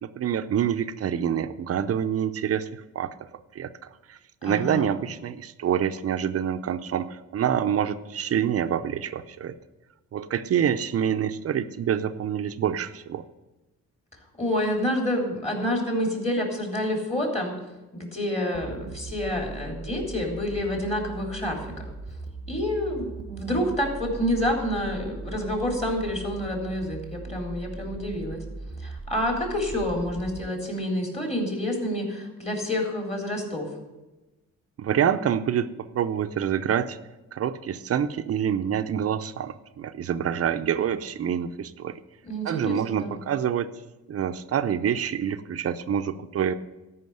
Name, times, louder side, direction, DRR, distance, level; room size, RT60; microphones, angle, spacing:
voice 1, 0.0-3.1 3.5-9.5 10.1-13.2 34.8-37.0 37.3-41.9 42.4-43.7 44.1-46.6, right 9 dB, 50° right, 11 dB, 0.7 m, -27 dB
voice 2, 4.4-4.9 14.4-17.5 17.9-21.9 22.5-28.4 28.8-33.7 42.2-43.2, left 1 dB, 20° left, 1 dB, 3.6 m, -28 dB
sound 1, 18.5-30.5, right 3 dB, 15° right, 1.0 m, -39 dB
13.5 x 5.8 x 7.9 m, 1.1 s
cardioid pair, 90°, 30 cm